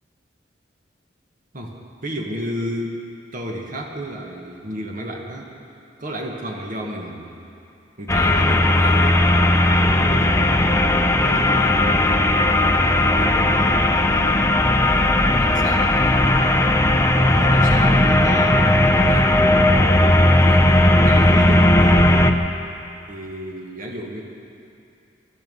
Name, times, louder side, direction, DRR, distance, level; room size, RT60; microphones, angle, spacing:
voice 1, 1.5-3.0 3.3-5.6 6.0-7.3 8.0-9.3 9.8-11.9 12.6-15.9 16.9-19.4 20.4-22.1 23.1-24.2, equal, 50° right, 0 dB, 1.6 m, -32 dB
sound 1, 8.1-22.3, left 1 dB, 15° left, 0.7 m, -16 dB
23.0 x 11.5 x 5.4 m, 2.7 s
head